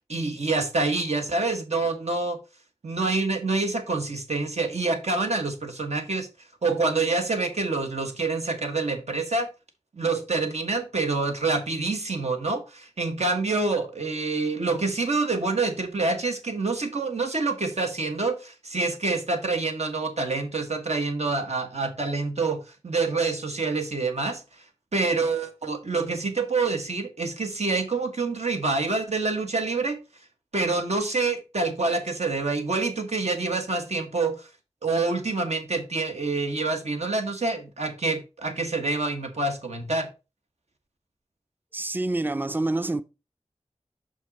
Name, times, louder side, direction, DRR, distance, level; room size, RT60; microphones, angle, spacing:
voice 1, 0.1-2.4 2.8-6.3 6.6-9.5 9.9-24.4 24.9-30.0 30.5-34.4 34.8-40.1, right 3 dB, 75° right, 1.5 m, -27 dB
voice 2, 41.7-43.0, right 2 dB, 15° right, 0.4 m, -27 dB
6.2 x 5.4 x 4.1 m
wide cardioid pair, 60°, 11 cm